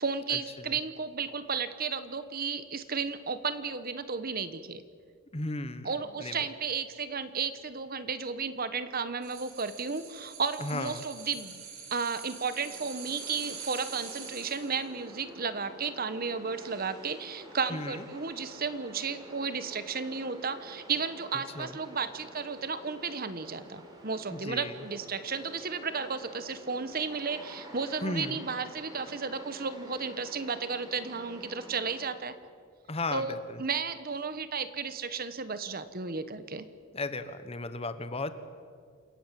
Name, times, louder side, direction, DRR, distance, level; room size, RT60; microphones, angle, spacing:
voice 1, 0.0-4.8 5.8-11.6 11.9-32.3 33.1-36.7, right 5 dB, 45° right, 12 dB, 1.2 m, -33 dB
voice 2, 5.3-5.9 6.2-6.4 10.6-11.0 17.7-18.0 21.6-21.7 24.3-24.8 28.0-28.4 32.9-33.6 36.9-38.3, left 2 dB, 30° left, 11 dB, 1.2 m, -35 dB
sound 1, 9.2-14.9 15.2-15.3, right 6 dB, 80° right, 5.4 m, -44 dB
sound 2, 12.6-32.1, equal, 20° right, 4.3 m, -49 dB
28.0 x 16.0 x 9.2 m, 2.1 s
head